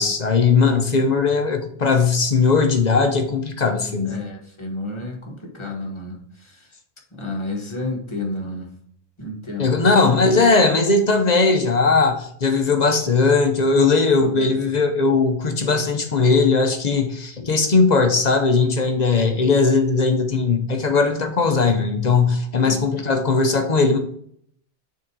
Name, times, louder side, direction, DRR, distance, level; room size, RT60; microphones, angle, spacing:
voice 1, 0.0-4.2 9.6-24.0, left 4 dB, 45° left, 0.8 m, -18 dB
voice 2, 4.0-6.5 7.2-8.7 9.2-9.7 14.2-14.7 22.6-22.8, left 2 dB, 25° left, 1.3 m, -31 dB
6.2 x 3.9 x 4.5 m
omnidirectional pair, 1.1 m